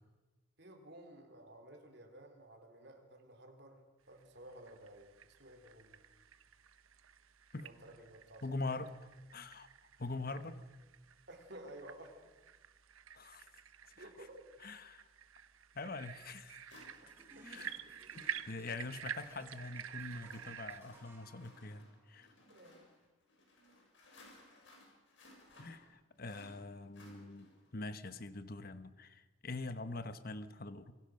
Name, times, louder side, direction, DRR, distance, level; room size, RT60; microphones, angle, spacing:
voice 1, 0.6-5.1 5.4-6.0 7.6-8.8 11.3-12.2 14.0-14.4 17.3-17.5 22.5-22.8, right 1 dB, 55° right, 4 dB, 4.0 m, -54 dB
sound 1, 4.4-20.8, right 8 dB, 90° right, 1.0 m, -50 dB
voice 2, 8.4-8.9 9.3-9.7 10.0-10.6 13.1-13.5 14.0-14.1 14.6-15.1 15.7-16.6 17.4-17.8 18.1-22.3 25.6-30.9, left 3 dB, 45° left, 11 dB, 1.2 m, -44 dB
sound 2, 15.8-15.9 16.7-27.7, left 2 dB, 65° left, 6.9 m, -62 dB
sound 3, 17.1-22.2, right 1 dB, 10° right, 3.8 m, -63 dB
27.0 x 22.5 x 6.5 m, 1.2 s
head